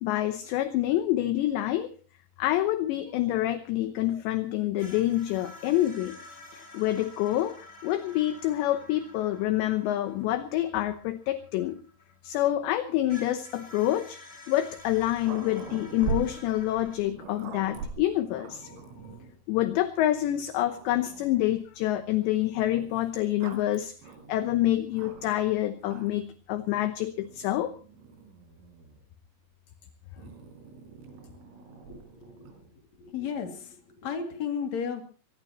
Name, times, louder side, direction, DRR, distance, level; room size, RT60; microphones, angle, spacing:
voice 1, 0.0-1.9 2.4-6.2 6.5-7.5 7.8-11.8 12.2-14.2 14.5-18.8 19.5-23.9 24.3-27.7, left 14 dB, 75° left, 10 dB, 2.7 m, -27 dB
sound 1, 4.8-12.5 13.1-17.0, left 2 dB, 15° left, 5.0 m, -50 dB
Growling, 14.8-19.4 20.1-20.2 20.5-21.6 22.7-25.5 25.8-26.3 27.2-29.0 30.2-32.7, right 5 dB, 80° right, 6.1 m, -41 dB
voice 2, 31.9-32.5 33.0-35.0, left 7 dB, 40° left, 4 dB, 3.3 m, -34 dB
23.0 x 20.5 x 3.0 m, 0.38 s
omnidirectional pair, 6.0 m